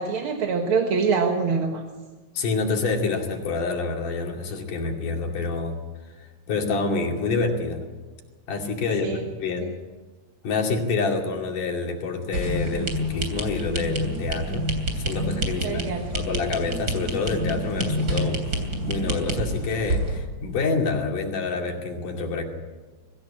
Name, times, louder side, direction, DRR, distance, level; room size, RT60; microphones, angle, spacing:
voice 1, 0.0-1.8 9.0-9.3 9.6-9.7 15.6-16.1, right 5 dB, 50° right, 3 dB, 1.9 m, -24 dB
voice 2, 2.4-5.8 6.2-7.8 8.5-9.7 10.4-22.4, left 4 dB, 80° left, 2 dB, 4.1 m, -27 dB
sound 1, 12.3-20.2, right 1 dB, 30° right, 3.5 m, -28 dB
23.5 x 15.5 x 8.7 m, 1.3 s
omnidirectional pair, 3.6 m